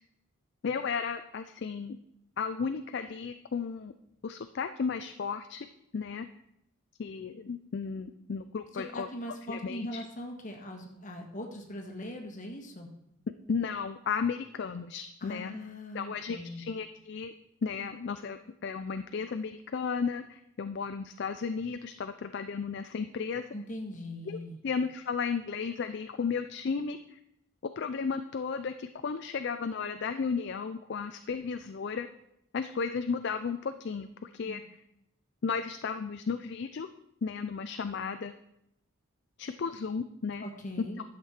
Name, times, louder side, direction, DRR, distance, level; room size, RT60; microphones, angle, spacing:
voice 1, 0.6-2.0 2.4-3.9 4.2-5.7 5.9-6.3 7.0-9.1 9.5-10.0 13.5-15.5 15.9-17.3 17.6-23.5 24.3-24.4 24.6-27.2 27.8-32.1 32.5-34.8 35.4-36.9 37.2-38.3 39.4-40.4 41.0-41.1, left 5 dB, 50° left, 9 dB, 0.4 m, -34 dB
voice 2, 8.7-12.9 15.2-16.7 23.5-24.6 34.5-34.6 40.4-41.0, left 1 dB, 35° left, 1 dB, 1.5 m, -41 dB
11.0 x 6.6 x 4.4 m, 0.80 s
head